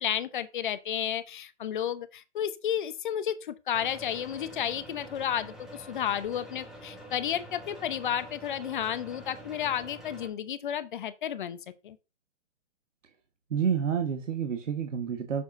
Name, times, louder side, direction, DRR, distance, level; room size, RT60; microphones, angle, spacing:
voice 1, 0.0-11.6 11.8-12.0, left 9 dB, 40° left, 0.8 m, -32 dB
sound 1, 3.7-10.3, equal, ahead, 1.1 m, -46 dB
voice 2, 13.5-15.4, right 7 dB, 85° right, 1.4 m, -29 dB
8.6 x 7.1 x 2.6 m
hypercardioid pair, 155°, 37 cm